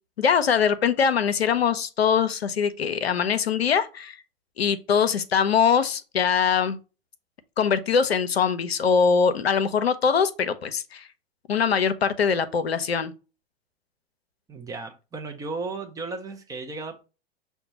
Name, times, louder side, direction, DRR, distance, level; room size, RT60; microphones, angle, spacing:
voice 1, 0.2-4.2 4.6-6.8 7.6-11.0 11.5-13.1, left 6 dB, 80° left, 0.5 m, -22 dB
voice 2, 14.5-17.0, right 3 dB, 10° right, 0.4 m, -35 dB
5.8 x 2.2 x 2.8 m
figure-of-eight pair, 95°, 31 cm